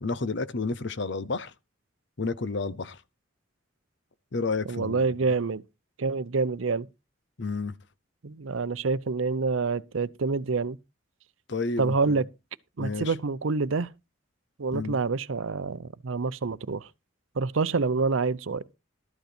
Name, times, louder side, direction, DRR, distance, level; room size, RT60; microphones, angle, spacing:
voice 1, 0.0-1.5 2.2-3.0 4.3-5.3 7.4-7.8 11.5-12.2 12.8-13.1 14.7-15.0, left 3 dB, 60° left, 0.8 m, -31 dB
voice 2, 4.7-5.6 6.0-6.9 8.2-10.8 11.8-12.2 12.8-13.9 14.6-16.9 17.4-18.6, right 4 dB, 85° right, 0.7 m, -27 dB
13.0 x 8.0 x 4.4 m
head